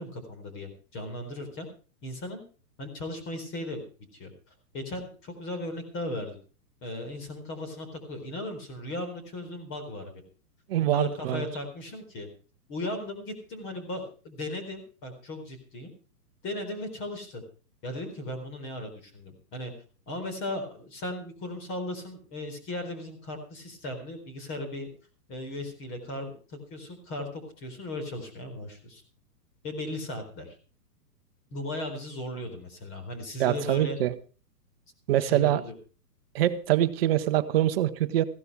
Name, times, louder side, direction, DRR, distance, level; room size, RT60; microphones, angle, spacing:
voice 1, 0.0-1.7 2.0-2.4 2.8-3.8 4.1-4.3 4.7-6.4 6.8-10.2 10.9-12.3 12.7-15.9 16.4-17.4 17.8-19.7 20.1-24.9 25.3-29.0 29.6-30.6 31.5-34.0 35.2-35.7, left 1 dB, 25° left, 7 dB, 4.2 m, -37 dB
voice 2, 10.7-11.5 33.4-34.1 35.1-35.6 36.3-38.2, right 13 dB, 40° right, 11 dB, 1.0 m, -24 dB
15.5 x 12.5 x 4.7 m, 0.37 s
hypercardioid pair, 145°, 48 cm